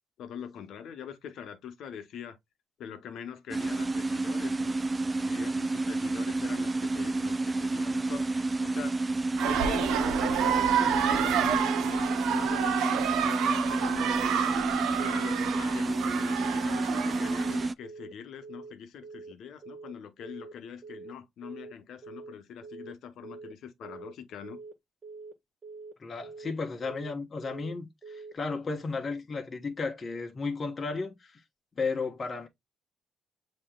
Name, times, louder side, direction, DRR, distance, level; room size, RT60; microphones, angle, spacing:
voice 1, 0.2-2.4 2.8-4.8 5.2-9.0 9.4-14.6 15.0-24.6, left 8 dB, 75° left, 1.0 m, -43 dB
sound 1, 3.5-17.7, right 2 dB, 25° right, 0.3 m, -30 dB
sound 2, 9.4-17.7, right 9 dB, 90° right, 0.6 m, -29 dB
Telephone, 17.2-17.5 17.8-18.1 18.4-18.7 19.0-19.3 19.6-19.9 20.2-20.5 20.8-21.1 21.4-21.7 22.0-22.3 22.6-22.9 23.2-23.5 23.8-24.1 24.4-24.7 25.0-25.3 25.6-25.9 26.2-26.5 26.8-27.1 27.4-27.7 28.0-28.3, right 3 dB, 40° right, 1.6 m, -45 dB
voice 2, 26.0-31.4 31.8-32.5, left 4 dB, 35° left, 1.1 m, -34 dB
7.5 x 3.0 x 2.3 m
cardioid pair, 90°, 0 cm